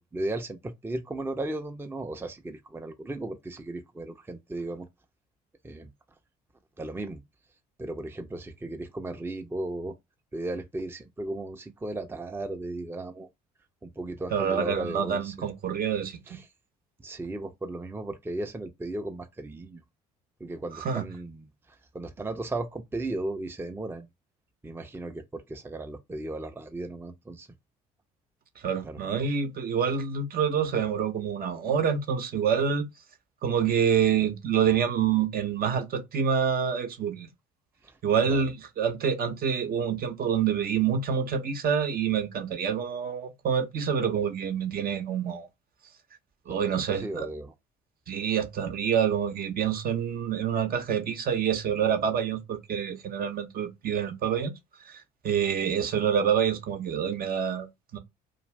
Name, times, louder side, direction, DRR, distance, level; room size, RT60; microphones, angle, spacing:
voice 1, 0.0-4.9 5.6-5.9 6.8-7.2 7.8-10.0 10.3-13.3 13.8-15.3 16.3-16.4 17.0-19.8 20.4-21.5 21.9-24.1 24.6-27.5 28.8-29.0 37.8-38.0 38.3-38.5 46.5-46.6 46.9-47.5, right 2 dB, 10° right, 0.6 m, -35 dB
voice 2, 14.3-16.2 20.8-21.0 28.6-32.9 33.4-37.3 38.0-45.5 46.5-47.3 48.1-54.5 54.9-57.7 57.9-58.0, right 7 dB, 50° right, 0.8 m, -27 dB
2.5 x 2.5 x 3.2 m
hypercardioid pair, 60°, 20 cm